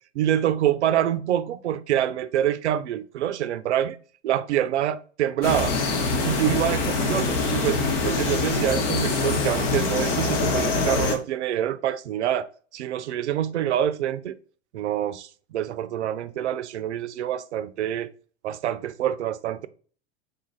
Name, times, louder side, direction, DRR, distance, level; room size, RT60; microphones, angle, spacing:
voice 1, 0.1-4.0 4.2-5.8 6.2-12.5 12.7-14.4 14.7-18.1 18.4-19.7, right 11 dB, 80° right, 0.5 m, -26 dB
sound 1, 5.4-11.2, left 3 dB, 55° left, 1.1 m, -24 dB
3.8 x 2.5 x 4.0 m
hypercardioid pair, 95°, 34 cm